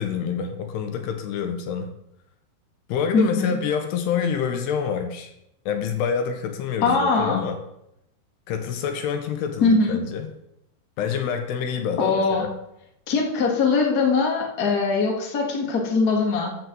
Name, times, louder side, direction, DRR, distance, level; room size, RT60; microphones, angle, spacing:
voice 1, 0.0-1.9 2.9-5.3 5.7-7.6 8.5-10.3 11.0-12.5, left 7 dB, 80° left, 6 dB, 3.1 m, -27 dB
voice 2, 3.1-3.6 6.8-7.4 9.6-10.0 12.0-12.5 13.1-16.6, left 4 dB, 35° left, -1 dB, 1.7 m, -21 dB
10.5 x 5.1 x 7.6 m, 0.80 s
omnidirectional pair, 4.7 m